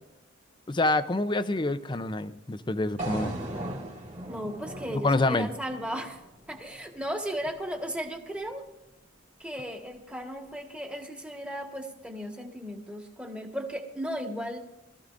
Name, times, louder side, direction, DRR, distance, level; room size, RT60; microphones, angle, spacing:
voice 1, 0.7-3.4 5.0-5.5, left 2 dB, 25° left, 12 dB, 0.5 m, -26 dB
sound 1, 3.0-7.1, right 1 dB, 35° right, 2.2 m, -38 dB
voice 2, 4.3-6.2 6.5-8.6 9.4-14.6, equal, 5° right, 2 dB, 1.5 m, -35 dB
21.5 x 14.0 x 2.6 m, 0.92 s
head